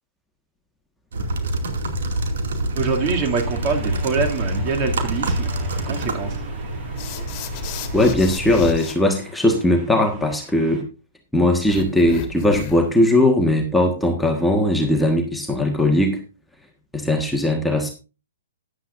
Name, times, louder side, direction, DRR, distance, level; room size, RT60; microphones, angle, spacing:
sound 1, 1.1-8.7, right 1 dB, 65° right, 2.4 m, -26 dB
voice 1, 2.7-5.5 5.8-6.4, right 4 dB, 35° right, 2 dB, 2.5 m, -24 dB
sound 2, 2.9-10.8, right 2 dB, 20° right, 5.9 m, -43 dB
sound 3, 7.0-8.9 11.6-13.0, left 8 dB, 35° left, 1.8 m, -34 dB
voice 2, 7.9-10.8 11.3-16.2 16.9-17.9, left 1 dB, 5° left, 2 dB, 1.5 m, -19 dB
13.5 x 10.5 x 2.6 m, 0.32 s
hypercardioid pair, 125°, 0 cm